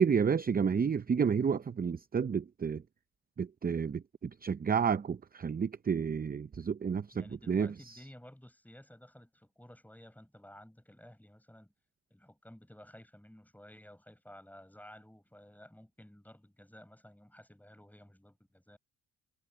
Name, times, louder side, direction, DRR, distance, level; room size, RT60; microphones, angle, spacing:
voice 1, 0.0-2.8 3.4-8.0, right 6 dB, 25° right, 0.5 m, -30 dB
voice 2, 7.1-11.7 12.1-18.8, left 1 dB, 5° left, 6.2 m, -54 dB
cardioid pair, 80°, 38 cm